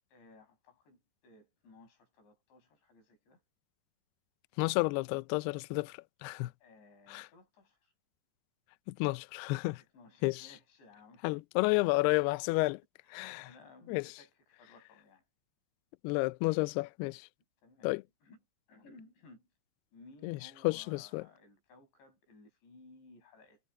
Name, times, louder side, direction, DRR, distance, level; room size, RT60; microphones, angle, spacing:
voice 1, 0.1-3.4 6.6-7.9 9.8-11.4 13.0-15.2 17.6-18.4 18.7-19.5 19.9-23.6, left 3 dB, 70° left, 8.6 m, -59 dB
voice 2, 4.6-6.5 7.1-7.3 8.9-9.8 10.2-10.5 11.2-12.8 13.1-13.5 13.9-14.1 16.0-17.3 17.8-18.0 20.2-20.4 20.6-21.2, left 23 dB, 90° left, 2.3 m, -31 dB
omnidirectional pair, 5.3 m